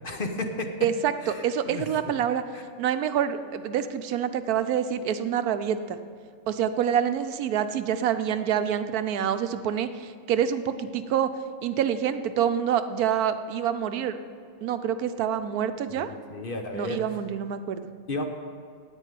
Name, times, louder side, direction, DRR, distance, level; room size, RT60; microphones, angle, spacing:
voice 1, 0.0-0.7 1.2-1.9 2.5-2.6 16.0-17.0 18.1-18.2, left 2 dB, 40° left, 4 dB, 1.0 m, -33 dB
voice 2, 0.8-2.4 2.8-6.0 6.5-11.3 11.6-14.2 14.6-16.1 16.7-17.9, right 9 dB, 90° right, 10 dB, 1.2 m, -27 dB
9.9 x 8.8 x 9.1 m, 2.2 s
omnidirectional pair, 1.5 m